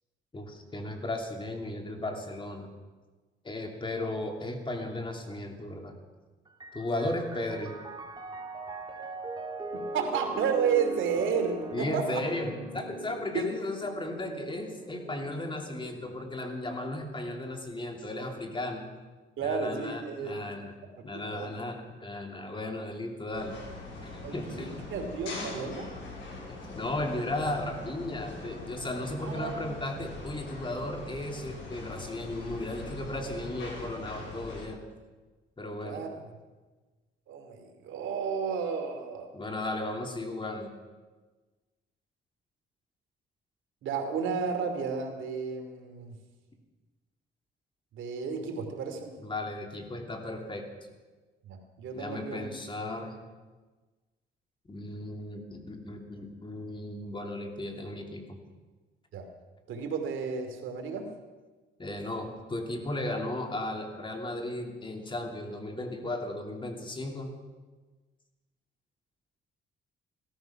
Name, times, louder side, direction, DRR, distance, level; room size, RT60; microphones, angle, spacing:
voice 1, 0.3-2.7 3.4-5.9 6.7-7.7 11.7-18.8 19.4-20.7 21.0-23.6 24.3-24.7 26.5-34.8 35.6-36.0 39.3-40.7 49.2-50.7 51.9-53.2 54.7-58.4 61.8-67.3, left 1 dB, 25° left, 3 dB, 2.8 m, -35 dB
Piano, 6.5-16.1, right 2 dB, 20° right, 2.5 m, -41 dB
voice 2, 9.7-12.2 13.3-13.5 19.4-20.4 21.3-21.5 24.2-25.9 29.2-29.7 35.8-36.1 37.3-39.3 43.8-46.2 47.9-49.1 51.5-52.4 59.1-59.3 59.7-61.1, right 6 dB, 80° right, 4 dB, 2.6 m, -32 dB
sound 1, 23.3-34.7, left 3 dB, 75° left, 6.4 m, -42 dB
17.0 x 13.5 x 5.9 m, 1.3 s
cardioid pair, 90°, 20 cm